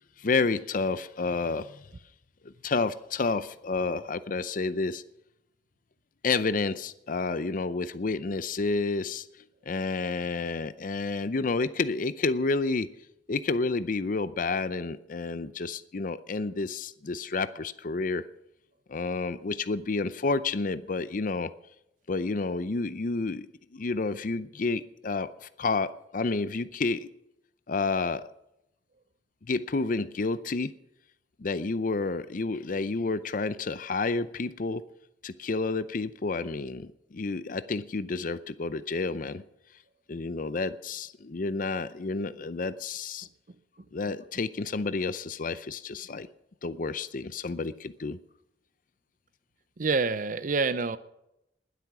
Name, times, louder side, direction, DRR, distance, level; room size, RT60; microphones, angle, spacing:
voice 1, 0.2-1.8 2.4-5.0 6.2-9.3 9.7-12.9 13.3-18.3 18.9-21.5 22.1-23.5 23.7-27.1 27.7-28.3 29.5-30.7 31.4-34.8 35.2-39.4 40.1-43.3 43.9-46.3 46.6-48.2, left 3 dB, 45° left, 14 dB, 0.5 m, -30 dB
voice 2, 49.8-51.0, right 4 dB, 45° right, 15 dB, 0.6 m, -27 dB
20.5 x 8.4 x 6.0 m, 0.83 s
head